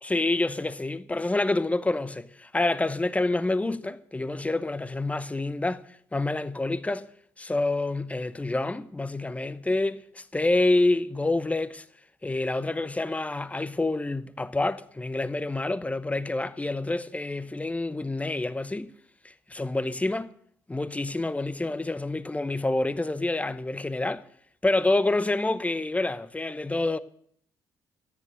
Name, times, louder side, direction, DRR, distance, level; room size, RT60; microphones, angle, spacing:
voice 1, 0.0-5.8 6.1-7.1 7.4-11.8 12.2-18.9 19.2-20.3 20.7-24.2 24.6-27.0, left 2 dB, 15° left, 0.9 m, -27 dB
13.5 x 9.5 x 6.3 m
figure-of-eight pair, 50°, 10 cm